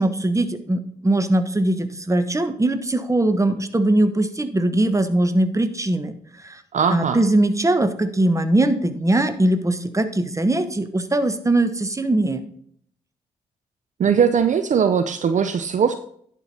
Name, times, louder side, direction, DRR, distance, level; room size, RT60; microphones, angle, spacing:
voice 1, 0.0-6.6 6.9-12.4, right 1 dB, 20° right, 11 dB, 1.2 m, -21 dB
voice 2, 6.7-7.2 14.0-15.9, right 7 dB, 50° right, 10 dB, 0.6 m, -19 dB
10.5 x 4.6 x 5.4 m, 0.63 s
hypercardioid pair, 40°, 16 cm